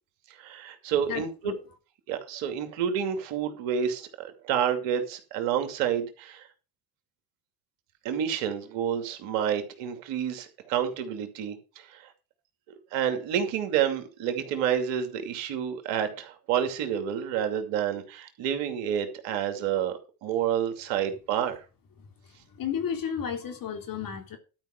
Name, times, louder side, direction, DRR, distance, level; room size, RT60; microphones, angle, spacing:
voice 1, 0.3-1.5 2.1-6.5 8.0-12.1 12.9-21.6, right 9 dB, 75° right, 2.6 m, -29 dB
voice 2, 1.1-1.6 22.0-24.4, left 8 dB, 50° left, 3.4 m, -33 dB
12.5 x 5.4 x 6.4 m
hypercardioid pair, 75°, 43 cm